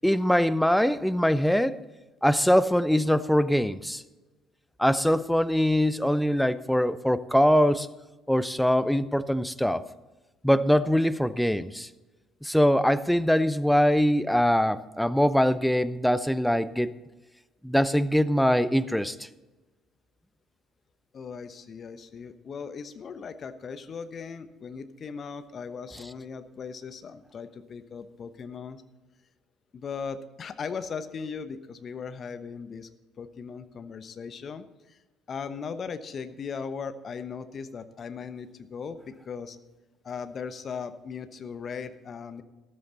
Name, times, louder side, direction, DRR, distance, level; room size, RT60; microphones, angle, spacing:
voice 1, 0.0-1.8 2.2-4.0 4.8-7.9 8.3-9.8 10.4-11.9 12.4-16.9 17.6-19.2, equal, ahead, 15 dB, 0.7 m, -23 dB
voice 2, 21.1-28.8 29.7-32.9 33.2-35.0 35.3-39.6 40.0-42.4, left 6 dB, 40° left, 11 dB, 1.0 m, -38 dB
13.5 x 13.0 x 4.0 m, 1.1 s
figure-of-eight pair, 50°, 0 cm